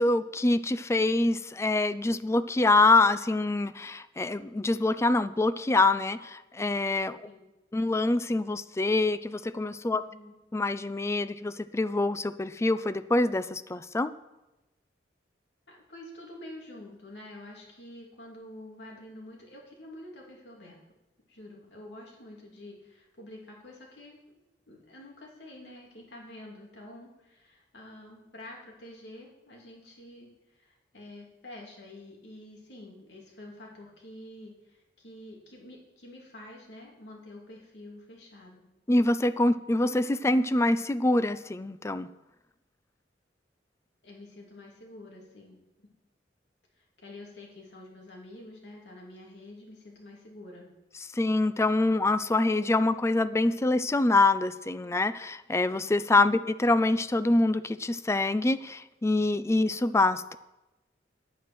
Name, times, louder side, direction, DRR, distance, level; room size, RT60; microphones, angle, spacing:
voice 1, 0.0-7.2 7.7-10.0 10.5-14.1 38.9-42.1 51.1-60.4, left 2 dB, 15° left, 13 dB, 0.4 m, -25 dB
voice 2, 9.9-10.4 15.7-20.8 21.3-24.2 24.7-38.7 44.0-45.9 46.7-50.7, left 1 dB, 80° left, -1 dB, 2.8 m, -48 dB
9.4 x 9.1 x 6.2 m, 0.99 s
head